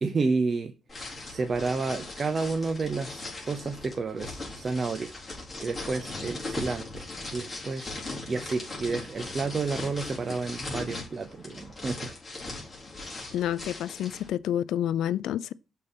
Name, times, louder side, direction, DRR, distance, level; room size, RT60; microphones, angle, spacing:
voice 1, 0.0-0.7 1.1-5.1 5.6-7.0 7.3-12.1, right 4 dB, 40° right, 0.7 m, -30 dB
sound 1, 0.9-14.3, left 2 dB, 15° left, 4.1 m, -39 dB
voice 2, 13.3-15.5, left 11 dB, 80° left, 0.3 m, -29 dB
6.6 x 4.3 x 5.4 m
cardioid pair, 90°, 0 cm